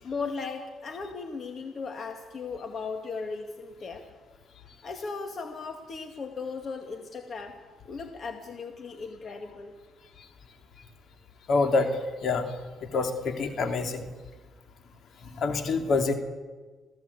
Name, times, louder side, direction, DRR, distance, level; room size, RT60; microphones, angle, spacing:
voice 1, 0.0-4.0 4.8-7.6 7.9-9.7, left 4 dB, 50° left, 5 dB, 2.2 m, -37 dB
voice 2, 11.5-11.9 12.2-12.5 12.9-14.1 15.4-16.1, left 4 dB, 65° left, 6 dB, 2.9 m, -26 dB
27.0 x 16.5 x 8.4 m, 1.3 s
cardioid pair, 90°, 0 cm